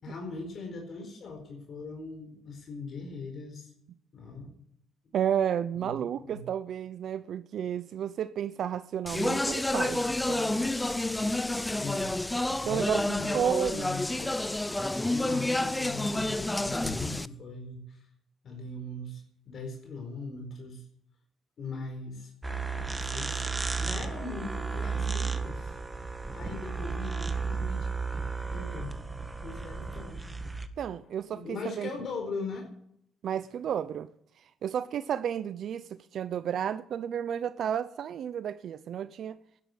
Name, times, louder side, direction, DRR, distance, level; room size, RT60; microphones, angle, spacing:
voice 1, 0.0-3.7 4.1-4.5 5.7-5.9 6.2-6.4 11.8-12.2 12.6-14.3 14.8-18.1 18.4-20.8 21.6-22.3 23.0-25.8 26.3-27.9 28.4-29.0 29.4-30.4 31.3-32.7, left 3 dB, 55° left, 4.7 m, -40 dB
voice 2, 5.1-10.7 12.5-13.8 30.8-31.9 33.2-34.1 34.4-39.4, right 9 dB, 65° right, 0.7 m, -32 dB
Speech, 9.1-17.3, left 1 dB, 10° left, 0.7 m, -29 dB
sound 1, 22.4-30.7, right 4 dB, 15° right, 1.7 m, -33 dB
12.0 x 11.0 x 9.7 m
cardioid pair, 90°, 0 cm